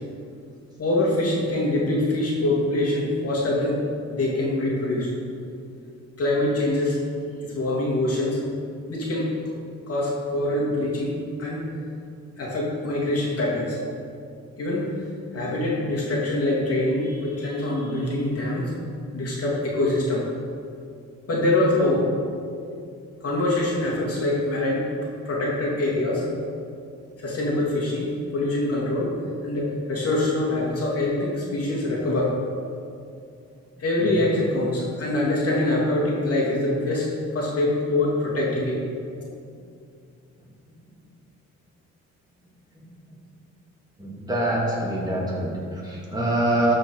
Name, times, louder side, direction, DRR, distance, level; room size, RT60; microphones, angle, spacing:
voice 1, 0.8-3.8 4.1-5.1 6.2-7.0 7.4-8.4 8.9-9.3 9.9-11.7 12.4-13.8 14.6-14.9 15.3-18.7 19.1-20.2 21.3-22.1 23.2-24.9 25.2-26.3 27.2-29.1 29.4-32.3 33.8-38.8, left 1 dB, 50° left, -4 dB, 2.6 m, -24 dB
voice 2, 44.0-46.7, right 1 dB, 15° right, -5 dB, 2.7 m, -25 dB
13.5 x 5.1 x 4.8 m, 2.4 s
cardioid pair, 90°, 30 cm